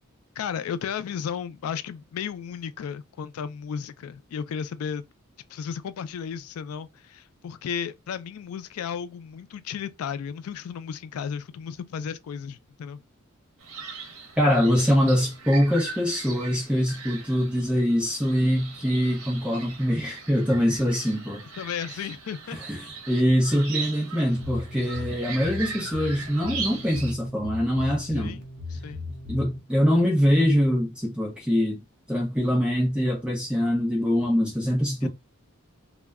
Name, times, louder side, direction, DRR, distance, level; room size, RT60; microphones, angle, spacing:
voice 1, 0.4-5.0 5.5-13.0 21.5-22.6 28.1-28.5 28.7-29.1 35.0-35.1, left 7 dB, 90° left, 0.3 m, -34 dB
sound 1, 13.6-27.1, right 5 dB, 90° right, 0.7 m, -39 dB
voice 2, 14.4-21.4 22.5-28.4 29.3-35.1, equal, 5° right, 0.5 m, -23 dB
sound 2, 24.3-29.6, left 3 dB, 50° right, 0.7 m, -37 dB
2.2 x 2.0 x 3.4 m
head